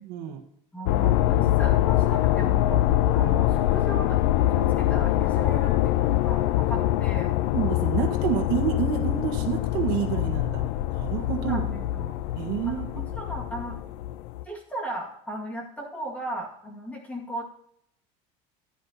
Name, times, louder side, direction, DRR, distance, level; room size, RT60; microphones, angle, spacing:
voice 1, 0.0-0.4 7.5-10.6 10.9-11.6 12.3-13.0, right 9 dB, 65° right, 3 dB, 1.6 m, -28 dB
voice 2, 0.7-2.9 3.1-4.2 4.5-7.3 11.4-12.1 12.6-12.9 13.1-13.8 14.4-17.4, right 1 dB, 10° left, -1 dB, 2.1 m, -36 dB
sound 1, 0.9-14.4, left 14 dB, 85° left, 0.4 m, -24 dB
15.5 x 9.9 x 2.9 m, 0.70 s
cardioid pair, 170°, 16 cm